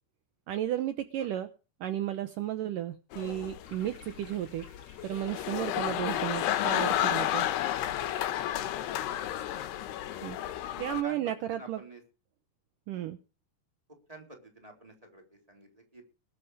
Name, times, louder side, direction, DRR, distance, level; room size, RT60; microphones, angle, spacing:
voice 1, 0.5-1.5 1.8-4.6 5.0-7.5 10.2-10.4 10.8-11.8 12.9-13.2, right 12 dB, 85° right, 9 dB, 1.9 m, -33 dB
sound 1, 3.1-11.0, left 12 dB, 75° left, 3.0 m, -32 dB
sound 2, 3.6-8.6, left 4 dB, 35° left, 2.9 m, -54 dB
voice 2, 8.8-9.2 10.2-10.5 11.0-11.2 11.5-12.0 14.1-16.0, right 1 dB, 10° right, 2 dB, 3.6 m, -50 dB
21.0 x 8.4 x 4.9 m, 0.34 s
omnidirectional pair, 5.2 m